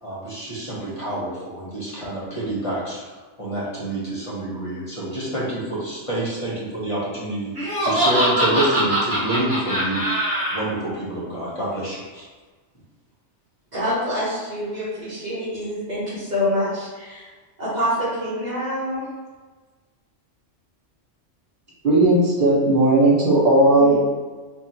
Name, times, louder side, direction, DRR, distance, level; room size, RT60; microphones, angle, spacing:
voice 1, 0.0-3.0 3.4-10.0 10.5-12.3, right 1 dB, 30° left, -7 dB, 1.1 m, -27 dB
Laughter, 7.5-10.6, right 1 dB, 10° right, 1.3 m, -22 dB
voice 2, 13.7-17.3 17.6-19.0 23.8-24.0, equal, 35° right, -12 dB, 1.3 m, -26 dB
voice 3, 21.8-24.0, right 2 dB, 55° right, -9 dB, 1.8 m, -16 dB
3.8 x 2.7 x 3.0 m, 1.4 s
omnidirectional pair, 1.3 m